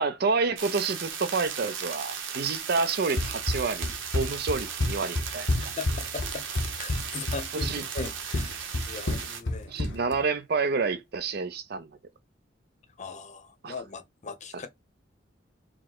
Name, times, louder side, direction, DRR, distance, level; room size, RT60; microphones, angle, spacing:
voice 1, 0.0-5.7 7.5-7.8 9.7-11.9 13.6-13.7, right 4 dB, 55° right, 0.5 m, -29 dB
sound 1, 0.6-9.4, right 7 dB, 90° right, 1.0 m, -36 dB
Run, 3.2-10.2, left 2 dB, 70° left, 0.8 m, -30 dB
voice 2, 5.6-6.5 6.8-7.7 7.9-9.7 13.0-14.7, left 4 dB, 40° left, 0.7 m, -39 dB
4.6 x 2.1 x 3.9 m
head